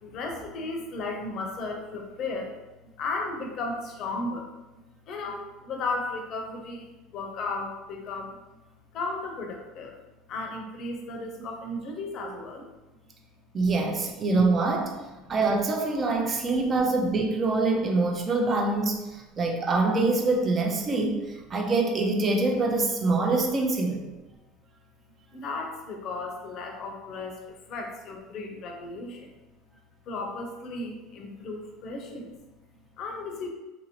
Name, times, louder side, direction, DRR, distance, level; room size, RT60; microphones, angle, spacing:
voice 1, 0.0-2.6 2.8-4.5 5.1-8.6 8.9-12.7 15.1-15.4 25.3-29.3 30.1-33.5, left 3 dB, 55° left, 2 dB, 0.6 m, -35 dB
voice 2, 13.5-14.9 15.3-24.1, right 3 dB, 35° right, 2 dB, 0.6 m, -25 dB
2.9 x 2.7 x 2.9 m, 1.1 s
supercardioid pair, 95°, 0 cm